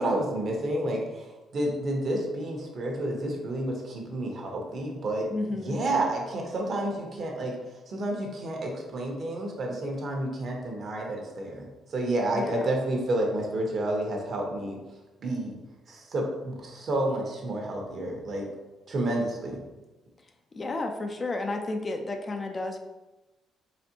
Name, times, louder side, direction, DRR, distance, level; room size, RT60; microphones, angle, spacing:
voice 1, 0.0-7.6 7.9-14.8 15.2-15.5 15.9-18.5 18.9-19.6, right 1 dB, 55° right, 1 dB, 1.0 m, -30 dB
voice 2, 5.3-5.8 12.3-12.7 20.5-22.8, left 2 dB, 35° left, 4 dB, 0.5 m, -32 dB
4.1 x 3.3 x 2.8 m, 1.1 s
cardioid pair, 90°, 0 cm